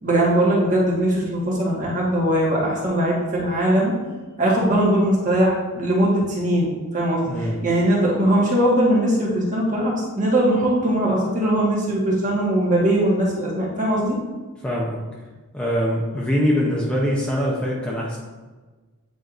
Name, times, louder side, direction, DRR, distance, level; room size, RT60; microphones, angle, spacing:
voice 1, 0.0-3.9 4.4-14.2, right 1 dB, 35° right, -4 dB, 1.6 m, -20 dB
voice 2, 7.2-7.6 14.6-15.0 15.5-18.2, equal, 5° left, -5 dB, 0.7 m, -23 dB
8.9 x 4.6 x 2.6 m, 1.3 s
head